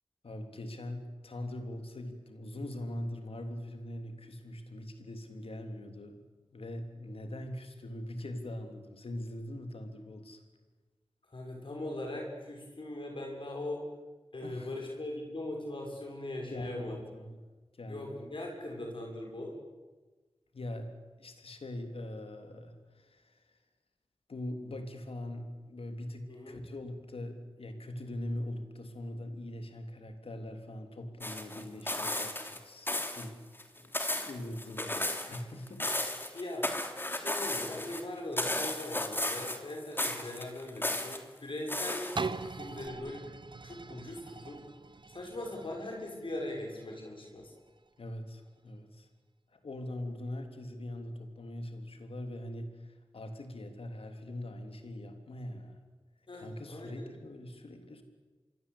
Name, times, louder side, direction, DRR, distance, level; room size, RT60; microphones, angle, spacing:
voice 1, 0.2-6.2 6.5-10.4 14.4-15.0 16.5-17.4 17.7-18.2 20.5-20.9 21.2-23.6 24.3-33.5 33.7-36.4 48.0-49.1 49.5-55.8 56.3-58.0, left 1 dB, 90° left, 6 dB, 3.4 m, -42 dB
voice 2, 11.3-13.8 14.3-17.0 17.9-19.6 26.3-26.6 36.3-36.7 37.1-42.1 42.5-43.3 43.6-44.6 45.1-47.5 56.3-57.1, left 1 dB, 65° left, 0 dB, 6.9 m, -40 dB
sound 1, 31.2-32.6 32.9-33.3 33.6-35.4 35.7-38.0 38.4-39.7 40.0-41.2 41.7-42.5 42.9-43.0, left 1 dB, 25° left, 3.1 m, -34 dB
sound 2, 42.1-47.9 48.5-48.6, right 4 dB, 55° right, 1.2 m, -42 dB
27.5 x 22.5 x 8.6 m, 1.3 s
wide cardioid pair, 70°, 9 cm